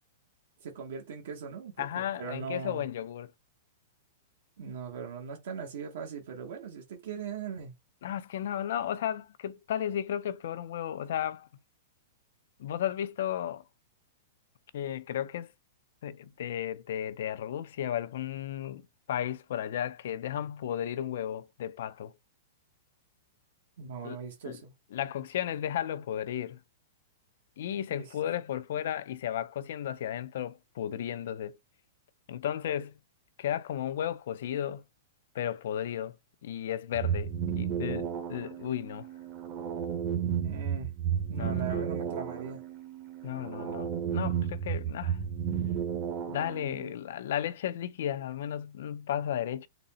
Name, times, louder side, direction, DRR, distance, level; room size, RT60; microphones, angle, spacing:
voice 1, 0.6-2.9 4.6-7.7 23.8-24.7 28.0-28.2 40.4-40.9 41.3-42.6, right 6 dB, 65° right, 0.9 m, -40 dB
voice 2, 1.8-3.3 8.0-11.5 12.6-13.6 14.7-15.5 16.0-18.8 19.1-22.1 24.0-24.2 24.5-24.6 24.9-26.6 27.6-31.6 32.3-33.0 33.4-34.8 35.3-36.2 36.4-39.1 41.4-41.8 43.2-45.2 46.3-49.7, left 10 dB, 60° left, 0.4 m, -34 dB
sound 1, 36.9-46.9, right 8 dB, 30° right, 0.7 m, -33 dB
3.9 x 2.0 x 3.9 m
hypercardioid pair, 165°, 0 cm